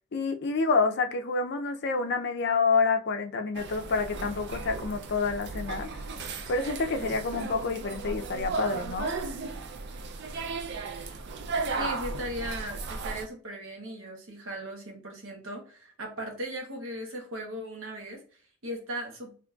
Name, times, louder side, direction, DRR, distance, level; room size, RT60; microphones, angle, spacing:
voice 1, 0.1-5.9 6.5-9.1, left 4 dB, 55° left, 0.5 m, -28 dB
Restaurant Shanghai China, 3.5-13.3, right 4 dB, 55° right, 0.4 m, -35 dB
voice 2, 11.8-19.3, equal, 70° right, 1.0 m, -38 dB
3.7 x 2.9 x 2.3 m
head